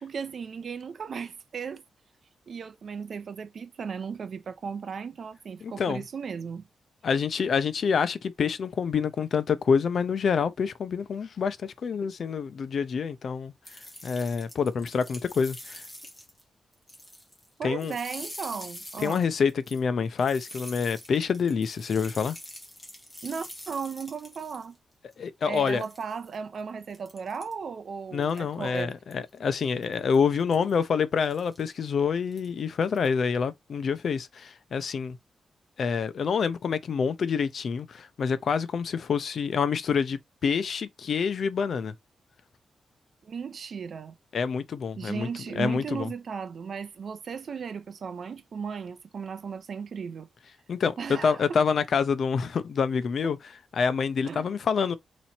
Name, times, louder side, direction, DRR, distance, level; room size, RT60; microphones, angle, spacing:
voice 1, 0.0-1.8 2.5-6.6 17.6-19.3 23.2-24.8 25.5-28.9 43.2-44.1 45.0-50.3 51.0-51.6 54.2-54.5, right 6 dB, 50° right, 0.6 m, -36 dB
voice 2, 5.6-6.0 7.0-13.5 14.0-15.8 17.6-17.9 19.0-22.4 25.2-25.8 28.1-35.2 35.8-41.9 44.3-45.3 45.6-46.1 50.7-53.4 53.7-55.0, left 6 dB, 50° left, 0.5 m, -27 dB
sound 1, 13.6-16.4 16.7-17.5 17.8-24.7 25.1-25.2 25.5-26.4 26.9-27.5 28.2-28.6 29.1-29.3 29.8-30.2 30.5-30.7 31.2-31.6 32.3-32.5 32.8-33.1, left 1 dB, 10° left, 1.6 m, -45 dB
4.0 x 3.1 x 4.3 m
wide cardioid pair, 170°, 0 cm